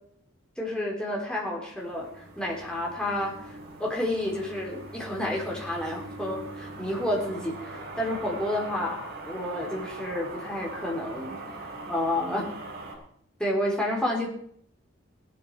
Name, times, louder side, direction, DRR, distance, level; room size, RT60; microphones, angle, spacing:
voice 1, 0.6-3.5 3.8-11.4 11.9-12.5 13.4-14.3, left 1 dB, 5° left, -2 dB, 3.6 m, -30 dB
sound 1, 1.8-12.9, right 2 dB, 50° right, 5.8 m, -41 dB
17.5 x 11.5 x 4.8 m, 0.66 s
head